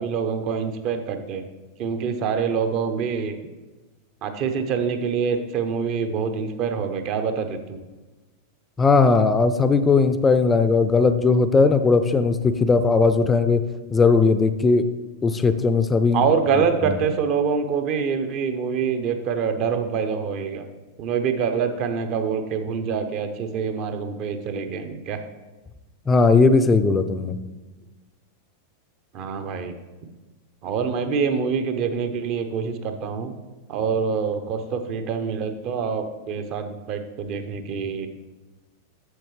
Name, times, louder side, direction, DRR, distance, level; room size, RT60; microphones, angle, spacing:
voice 1, 0.0-1.4 1.8-3.3 4.2-7.8 16.1-20.6 21.0-25.2 29.1-29.7 30.6-33.3 33.7-38.1, right 6 dB, 40° right, 8 dB, 0.9 m, -25 dB
voice 2, 8.8-13.6 13.9-14.9 15.2-16.2 16.8-16.9 26.1-27.4, left 4 dB, 15° left, 11 dB, 0.5 m, -18 dB
11.0 x 7.6 x 3.2 m, 1.2 s
figure-of-eight pair, 90°, 0 cm